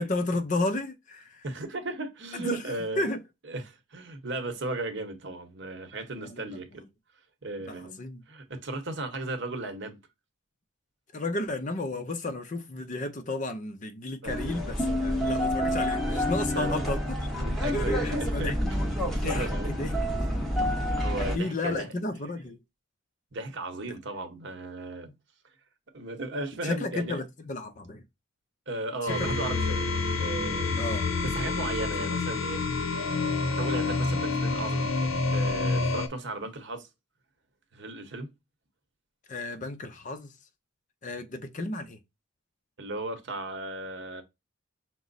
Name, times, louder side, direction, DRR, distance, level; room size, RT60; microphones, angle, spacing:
voice 1, 0.0-1.4 2.3-2.6 3.0-3.2 6.2-6.6 7.7-8.2 11.1-17.3 17.7-18.5 19.2-20.3 20.9-22.6 26.6-28.0 29.2-29.3 30.8-31.1 32.0-32.1 39.3-40.3 41.0-42.0, left 2 dB, 35° left, 0.5 m, -33 dB
voice 2, 1.4-3.0 3.5-6.8 7.4-8.0 8.3-10.0 14.2-14.4 16.5-17.0 17.4-18.7 19.0-19.7 20.9-21.9 23.3-25.1 25.9-27.2 28.7-29.9 30.2-30.9 31.2-32.7 33.5-36.9 37.7-38.3 42.8-44.2, right 2 dB, 55° right, 0.9 m, -36 dB
sound 1, 14.3-21.4, equal, ahead, 0.9 m, -28 dB
sound 2, 29.1-36.1, left 3 dB, 70° left, 0.8 m, -28 dB
6.0 x 2.0 x 3.9 m
head